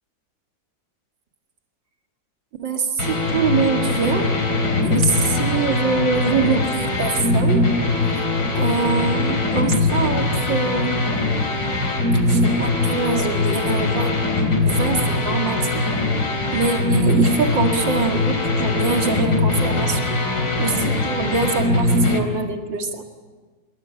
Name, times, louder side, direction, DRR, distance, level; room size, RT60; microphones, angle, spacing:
voice 1, 2.6-4.3 4.8-7.7 8.5-11.0 12.2-14.2 14.6-15.9 16.5-20.1 20.6-23.0, right 5 dB, 90° right, 4 dB, 2.7 m, -24 dB
sound 1, 3.0-22.2, left 2 dB, 70° left, 4.2 m, -21 dB
25.5 x 23.5 x 8.9 m, 1.4 s
omnidirectional pair, 2.0 m